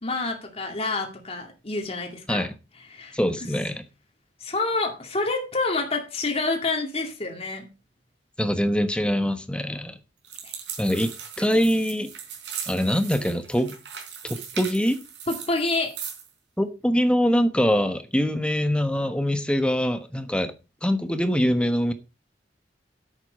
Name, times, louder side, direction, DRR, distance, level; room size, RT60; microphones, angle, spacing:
voice 1, 0.0-2.5 2.9-3.2 4.4-7.7 10.4-10.6 15.3-15.9, left 3 dB, 35° left, 2 dB, 2.4 m, -28 dB
voice 2, 3.1-3.8 8.4-10.0 10.8-12.1 12.6-13.8 14.2-15.0 16.6-20.5 20.8-21.9, equal, 5° left, 9 dB, 1.1 m, -23 dB
sound 1, 10.2-16.3, right 7 dB, 75° right, 4.4 m, -38 dB
10.5 x 8.1 x 4.7 m, 0.30 s
head